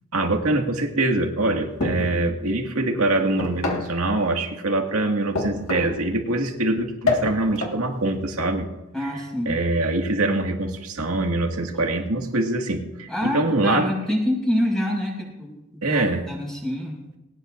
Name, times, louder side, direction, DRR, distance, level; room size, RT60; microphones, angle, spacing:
voice 1, 0.1-8.7 9.0-9.1 9.5-13.9 15.8-16.2, right 2 dB, 80° right, 2 dB, 2.1 m, -24 dB
sound 1, 1.8-2.3 3.4-4.0 5.3-6.0 7.1-7.8, left 3 dB, 70° left, 1.9 m, -26 dB
voice 2, 8.9-9.6 13.1-15.5 15.9-17.0, equal, 5° left, -2 dB, 5.8 m, -26 dB
20.0 x 18.5 x 2.6 m, 0.98 s
head